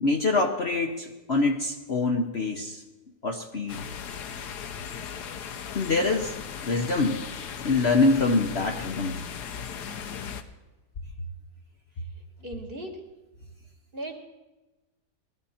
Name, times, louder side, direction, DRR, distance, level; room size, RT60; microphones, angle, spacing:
voice 1, 0.0-2.8 3.2-3.8 5.7-6.3 6.6-7.2 7.6-9.2, left 3 dB, 45° left, 2 dB, 1.0 m, -25 dB
sound 1, 3.7-10.4, left 7 dB, 75° left, 1.5 m, -37 dB
voice 2, 12.4-13.0 13.9-14.1, right 1 dB, 35° right, 1 dB, 1.9 m, -36 dB
19.5 x 13.5 x 4.3 m, 1.1 s
omnidirectional pair, 1.8 m